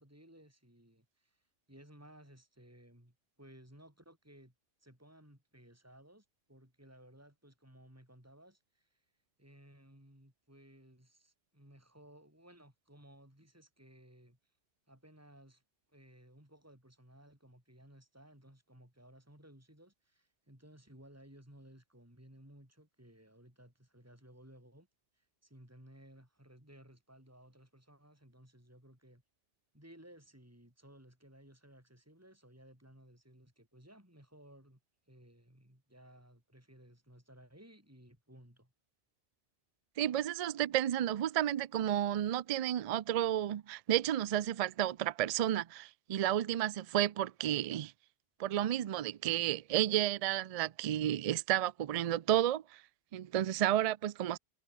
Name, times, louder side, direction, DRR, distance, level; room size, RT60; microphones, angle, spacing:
voice 1, 0.0-4.5 4.8-9.1 9.4-14.5 14.9-15.6 15.9-24.9 25.1-29.2 29.7-34.8 35.1-38.7, right 1 dB, 10° right, 5.6 m, -59 dB
voice 2, 40.0-47.9 48.4-52.8 53.1-54.4, right 12 dB, 70° right, 0.3 m, -32 dB
omnidirectional pair, 1.2 m